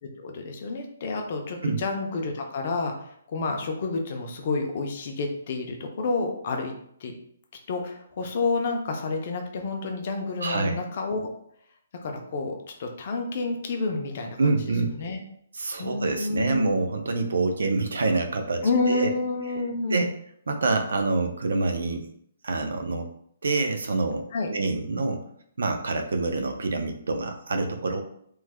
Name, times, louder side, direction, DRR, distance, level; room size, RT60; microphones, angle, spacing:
voice 1, 0.0-6.7 7.0-7.1 7.7-11.3 12.0-14.5 14.9-15.2 15.8-16.7 18.6-20.1 24.3-24.5, left 3 dB, 30° left, 3 dB, 0.4 m, -29 dB
voice 2, 10.4-10.8 14.4-15.0 15.5-19.1 19.9-20.1 20.5-22.1 22.4-23.1 23.4-25.2 25.6-28.0, right 3 dB, 80° right, 5 dB, 0.5 m, -26 dB
3.1 x 2.1 x 3.5 m, 0.67 s
hypercardioid pair, 180°, 0 cm